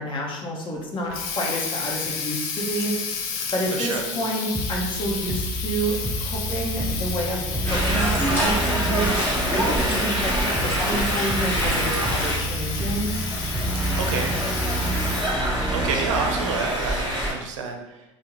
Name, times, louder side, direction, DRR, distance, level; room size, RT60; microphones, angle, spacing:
voice 1, 0.0-2.9 3.5-9.1 9.5-13.1, right 1 dB, 30° left, -1 dB, 0.9 m, -29 dB
Water tap faucet, 0.8-15.5, left 6 dB, 60° left, 0.5 m, -32 dB
voice 2, 3.7-4.1 14.0-14.3 15.7-18.0, right 5 dB, 80° right, 3 dB, 0.5 m, -28 dB
sound 1, 4.5-16.5, right 2 dB, 10° right, 0.3 m, -29 dB
sound 2, 7.6-17.3, equal, 15° left, 1.2 m, -26 dB
3.4 x 2.1 x 2.9 m, 0.98 s
hypercardioid pair, 85°, 16 cm